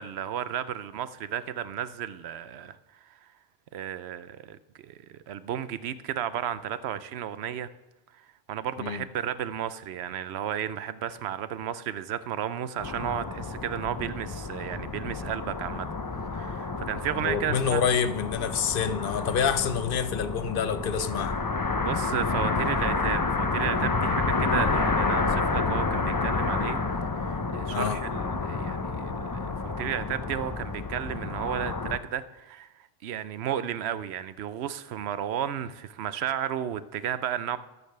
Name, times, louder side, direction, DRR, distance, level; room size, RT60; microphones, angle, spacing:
voice 1, 0.0-2.8 3.7-7.7 8.2-15.9 16.3-17.8 21.8-26.8 27.1-32.7 33.0-37.6, right 10 dB, 85° right, 14 dB, 0.9 m, -33 dB
sound 1, 12.8-32.0, left 3 dB, 25° left, 0.5 m, -29 dB
voice 2, 17.2-21.4 27.7-28.0, left 7 dB, 65° left, 12 dB, 0.8 m, -27 dB
12.5 x 6.7 x 6.5 m, 1.0 s
omnidirectional pair, 1.1 m